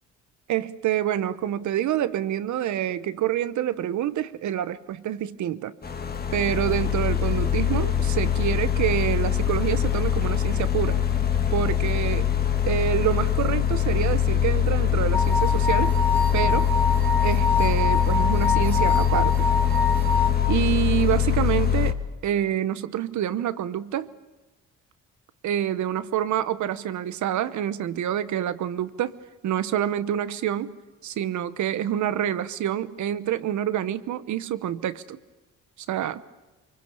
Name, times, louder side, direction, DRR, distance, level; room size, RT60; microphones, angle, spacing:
voice 1, 0.5-5.7 6.3-11.0 11.5-12.3 12.7-15.9 16.3-16.7 17.2-19.5 20.5-22.0 22.2-24.1 25.4-29.2 29.4-30.8 31.0-35.2 35.9-36.2, right 11 dB, 70° right, 14 dB, 1.0 m, -27 dB
sound 1, 5.8-21.9, left 9 dB, 30° left, 1.6 m, -23 dB
sound 2, 15.1-20.3, left 3 dB, 5° left, 2.1 m, -25 dB
24.5 x 23.0 x 6.9 m, 1.2 s
cardioid pair, 90°, 30 cm